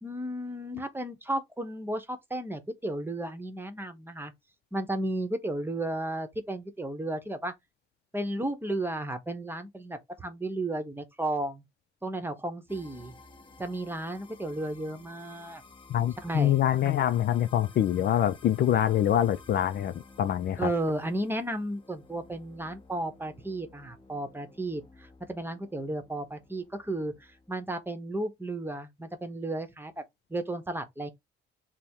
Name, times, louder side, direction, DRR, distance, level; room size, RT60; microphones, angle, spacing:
voice 1, 0.0-4.3 4.7-7.5 8.1-11.6 12.0-13.1 13.6-15.6 16.2-16.6 20.6-30.0 30.3-31.1, right 1 dB, 10° right, 0.8 m, -33 dB
sound 1, 12.7-27.8, left 3 dB, 25° left, 0.9 m, -54 dB
voice 2, 15.9-20.7, left 11 dB, 55° left, 0.4 m, -25 dB
3.5 x 2.0 x 4.3 m
cardioid pair, 90°, 20 cm